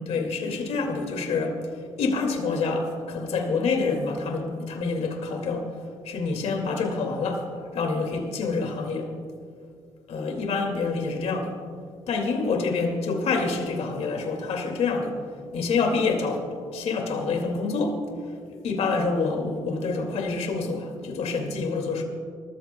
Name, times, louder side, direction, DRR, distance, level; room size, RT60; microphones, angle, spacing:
voice 1, 0.0-5.7 6.0-9.1 10.1-11.6 12.1-15.2 15.5-18.0 18.6-22.0, left 4 dB, 70° left, 2 dB, 2.3 m, -27 dB
27.5 x 14.0 x 2.3 m, 2.2 s
cardioid pair, 90°, 11 cm